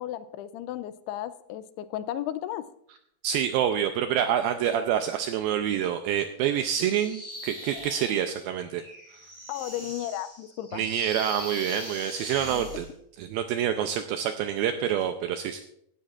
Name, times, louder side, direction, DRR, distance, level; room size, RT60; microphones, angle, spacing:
voice 1, 0.0-2.6 9.5-10.8, left 12 dB, 85° left, 13 dB, 2.5 m, -34 dB
voice 2, 3.2-8.8 10.7-12.9 13.2-15.6, right 9 dB, 90° right, 7 dB, 2.1 m, -27 dB
sound 1, 6.6-12.9, left 1 dB, 5° left, 1.5 m, -41 dB
16.5 x 11.5 x 2.4 m, 0.72 s
omnidirectional pair, 4.8 m